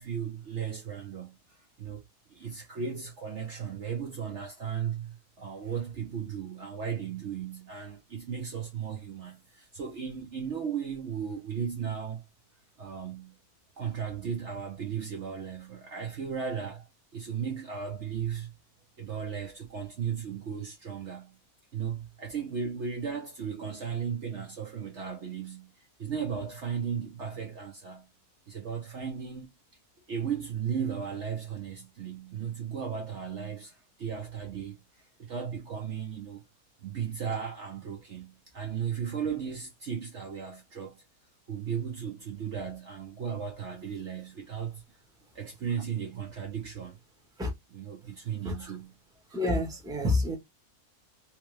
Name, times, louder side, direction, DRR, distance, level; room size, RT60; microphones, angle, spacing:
voice 1, 0.0-2.0 2.3-12.2 12.8-13.4 13.8-16.9 17.1-18.5 19.0-21.4 21.7-25.7 26.0-28.1 28.5-29.5 30.1-36.4 36.8-41.0 41.5-44.8 45.3-47.0 47.7-49.0, right 7 dB, 55° right, 0.9 m, -36 dB
voice 2, 49.3-50.4, left 2 dB, 5° right, 0.9 m, -28 dB
3.3 x 2.9 x 3.2 m
omnidirectional pair, 1.6 m